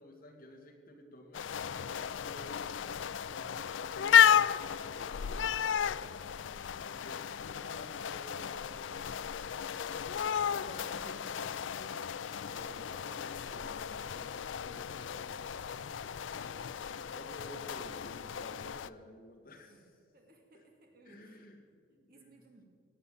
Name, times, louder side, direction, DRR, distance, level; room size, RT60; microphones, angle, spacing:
voice 1, 0.0-6.1 6.8-10.1 10.5-20.0 20.5-20.7 21.0-22.4, left 1 dB, 50° left, 2 dB, 2.1 m, -53 dB
sound 1, 1.3-18.9, left 8 dB, 90° left, 0.4 m, -33 dB
voice 2, 19.7-21.7 22.1-22.6, right 2 dB, 50° right, 2 dB, 2.5 m, -62 dB
18.0 x 8.2 x 8.6 m, 2.3 s
head